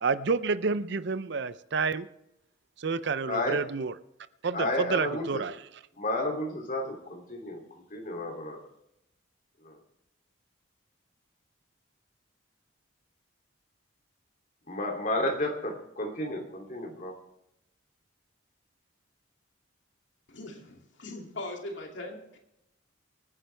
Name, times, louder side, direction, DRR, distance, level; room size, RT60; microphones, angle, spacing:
voice 1, 0.0-2.1 2.8-3.9 4.4-5.6, right 4 dB, 55° right, 14 dB, 0.5 m, -29 dB
voice 2, 3.3-3.6 4.5-5.4 6.0-7.6 7.9-8.6 9.6-9.8 14.7-17.1, left 1 dB, 40° left, 1 dB, 2.9 m, -32 dB
voice 3, 20.3-22.4, left 2 dB, 60° left, 1 dB, 2.6 m, -40 dB
25.0 x 9.9 x 3.4 m, 0.82 s
head